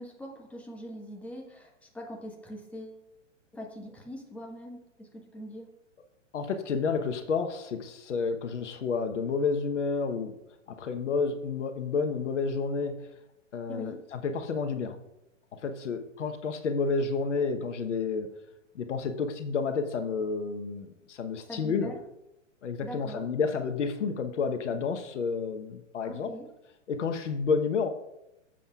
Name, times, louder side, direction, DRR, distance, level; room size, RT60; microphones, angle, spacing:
voice 1, 0.0-3.0 3.5-5.7 13.7-14.0 21.5-22.0 22.8-23.2 26.0-26.5, equal, 5° left, 1.3 m, -42 dB
voice 2, 6.3-10.3 10.7-13.1 13.5-15.0 15.5-18.3 18.7-21.9 22.6-26.3 26.9-27.9, left 5 dB, 70° left, 1.0 m, -30 dB
15.0 x 7.4 x 2.4 m
hypercardioid pair, 120°, 38 cm